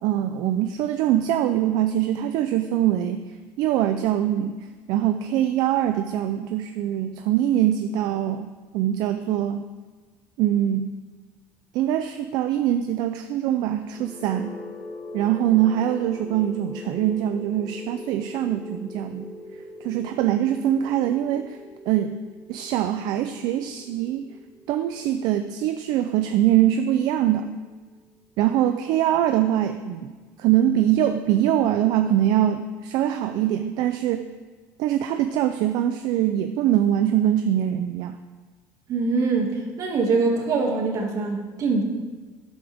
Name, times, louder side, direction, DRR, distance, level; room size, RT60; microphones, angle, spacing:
voice 1, 0.0-9.6 10.4-11.0 11.7-14.5 15.1-19.3 19.8-21.6 21.9-22.1 22.5-24.3 24.7-27.5 28.4-30.1 30.4-34.3 34.8-38.1, right 11 dB, 70° right, 8 dB, 0.6 m, -23 dB
sound 1, 13.8-27.7, left 2 dB, 15° left, 3.1 m, -42 dB
voice 2, 38.9-41.8, right 4 dB, 50° right, 1 dB, 2.3 m, -23 dB
13.0 x 9.8 x 3.6 m, 1.4 s
supercardioid pair, 110°, 7 cm